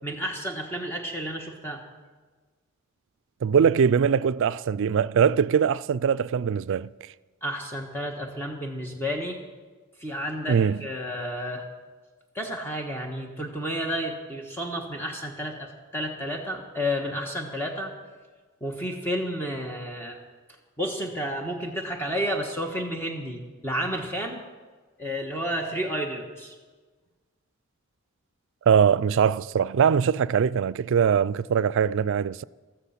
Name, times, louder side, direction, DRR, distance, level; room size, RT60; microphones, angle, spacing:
voice 1, 0.0-1.8 7.4-9.4 10.0-11.7 12.3-17.9 18.6-20.2 20.8-24.4 25.0-26.5, equal, 10° left, 1.4 m, -31 dB
voice 2, 3.4-6.9 10.5-10.8 28.7-32.4, right 7 dB, 65° right, 0.4 m, -22 dB
15.0 x 14.0 x 5.8 m
head